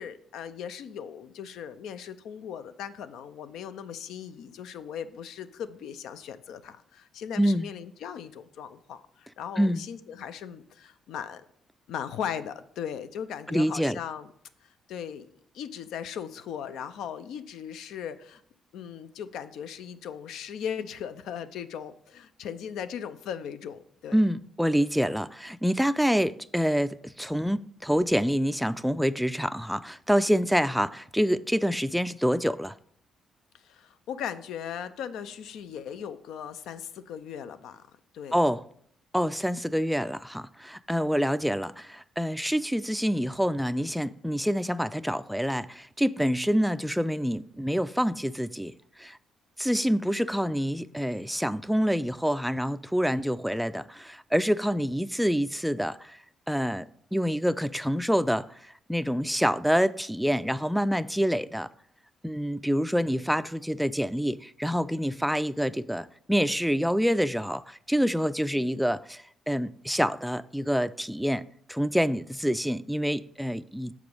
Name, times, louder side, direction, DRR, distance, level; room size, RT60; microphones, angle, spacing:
voice 1, 0.0-11.4 11.9-14.3 14.6-15.3 15.5-18.4 18.7-24.2 33.5-37.8 38.1-38.4 68.5-68.8, left 8 dB, 80° left, 0.5 m, -38 dB
voice 2, 7.4-7.7 9.6-9.8 13.5-14.0 24.1-32.8 38.3-38.6 39.1-48.7 49.0-49.2 49.6-56.2 56.5-61.7 62.2-73.9, equal, ahead, 0.3 m, -27 dB
6.9 x 4.9 x 5.3 m
cardioid pair, 90°, 0 cm